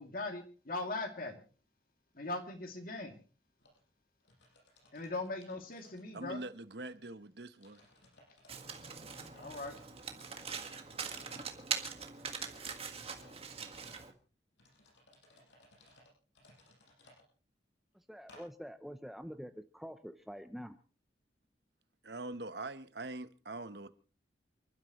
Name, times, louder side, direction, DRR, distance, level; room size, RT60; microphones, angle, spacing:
voice 1, 0.0-1.4 2.1-3.2 4.9-6.4 9.4-9.8, left 2 dB, 50° left, 2.6 m, -40 dB
sound 1, 3.6-3.8 4.2-6.5 6.9-7.0 7.6-8.5 8.8-11.6 12.1-14.0 14.6-17.2 18.3-18.4, left 1 dB, 80° left, 7.2 m, -63 dB
voice 2, 6.1-7.8 22.0-23.9, right 2 dB, 65° right, 1.0 m, -43 dB
Domestic sounds home sounds, 8.5-14.1, right 6 dB, 35° right, 1.7 m, -42 dB
voice 3, 17.9-20.8, equal, ahead, 0.6 m, -46 dB
29.0 x 12.0 x 3.1 m
head